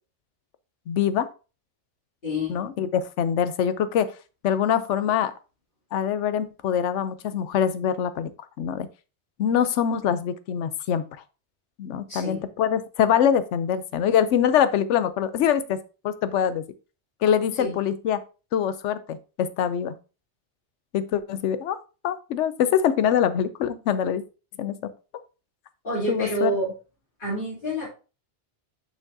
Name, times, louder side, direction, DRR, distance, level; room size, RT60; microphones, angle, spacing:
voice 1, 0.9-1.3 2.5-4.1 4.4-5.3 5.9-8.3 8.6-8.9 9.4-11.0 11.8-15.8 16.0-16.6 17.2-18.2 18.5-19.9 20.9-21.8 22.0-24.2 24.6-24.9 26.1-26.5, left 9 dB, 80° left, 12 dB, 0.9 m, -24 dB
voice 2, 2.2-2.6 12.1-12.5 17.6-17.7 25.8-26.7 27.2-27.9, equal, 45° left, -10 dB, 3.3 m, -28 dB
6.5 x 6.1 x 2.7 m, 0.33 s
omnidirectional pair, 1.2 m